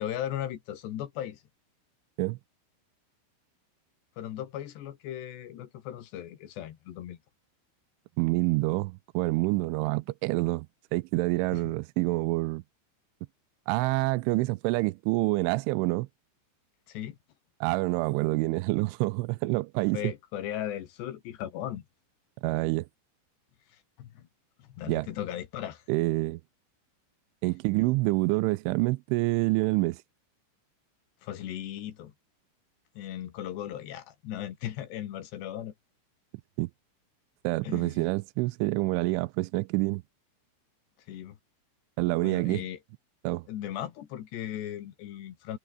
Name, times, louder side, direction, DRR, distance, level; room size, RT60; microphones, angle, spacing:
voice 1, 0.0-1.4 4.2-7.2 11.5-11.6 16.9-17.2 19.9-21.8 24.0-24.3 24.6-25.8 31.2-32.1 33.0-35.7 37.6-38.1 41.1-41.4 42.2-42.8 43.5-45.6, left 11 dB, 65° left, 3.7 m, -37 dB
voice 2, 8.2-10.7 10.9-12.6 13.7-16.1 17.6-20.0 22.4-22.9 24.9-25.1 25.9-26.4 27.4-30.0 36.6-36.7 37.4-40.0 42.0-42.6 43.2-43.5, right 22 dB, 85° right, 3.0 m, -27 dB
omnidirectional pair, 5.5 m